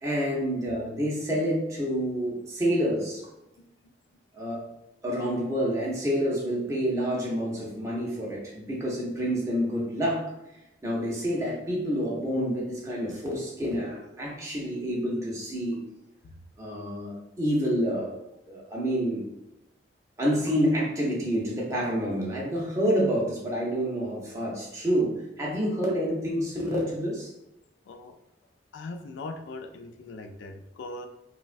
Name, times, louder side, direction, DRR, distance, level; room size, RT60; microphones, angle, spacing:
voice 1, 0.0-3.2 4.3-4.6 5.0-10.2 10.8-15.8 16.6-18.1 18.5-19.3 20.2-27.3, equal, 15° right, -5 dB, 0.6 m, -28 dB
voice 2, 28.7-31.1, left 2 dB, 75° left, 7 dB, 0.3 m, -40 dB
3.2 x 2.1 x 2.4 m, 0.90 s
head